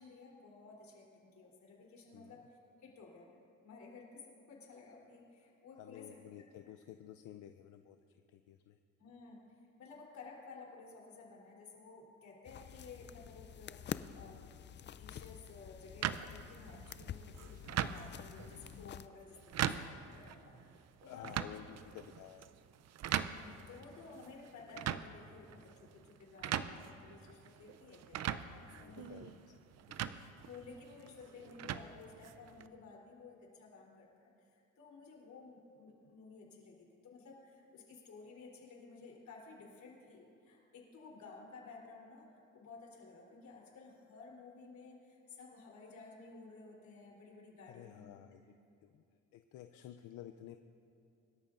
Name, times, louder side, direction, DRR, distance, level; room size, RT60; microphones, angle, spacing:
voice 1, 0.0-3.3 3.6-6.2 6.7-6.8 9.0-21.6 23.3-29.4 30.0-48.2 49.7-50.0, left 4 dB, 65° left, -2 dB, 3.5 m, -55 dB
voice 2, 5.8-8.0 8.3-8.8 21.1-22.5 28.7-29.4 29.9-30.2 47.7-48.4 48.8-49.0 49.3-50.6, left 11 dB, 90° left, 8 dB, 0.5 m, -52 dB
sound 1, 12.5-19.1, left 9 dB, 40° left, 0.4 m, -48 dB
sound 2, 16.0-32.7, right 10 dB, 60° right, 0.6 m, -42 dB
23.5 x 13.0 x 2.5 m, 2.5 s
cardioid pair, 90°, 30 cm